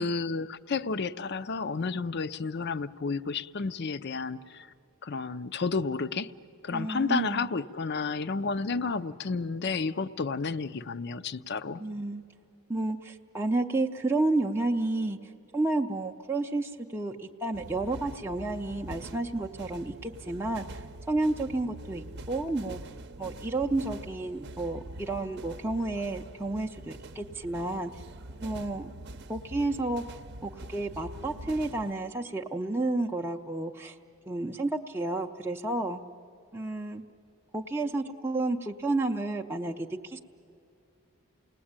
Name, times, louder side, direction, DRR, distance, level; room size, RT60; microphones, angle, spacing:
voice 1, 0.0-4.7 5.0-6.3 6.6-11.8, left 4 dB, 50° left, 14 dB, 0.5 m, -31 dB
voice 2, 6.7-7.5 11.8-12.2 12.7-22.8 23.2-28.0 28.4-28.9 29.3-34.0 34.3-36.0 36.5-37.0 37.5-40.2, right 2 dB, 10° right, 1 dB, 0.6 m, -31 dB
sound 1, 17.5-31.9, right 1 dB, 50° right, 0.8 m, -44 dB
29.0 x 19.5 x 8.8 m, 2.7 s
head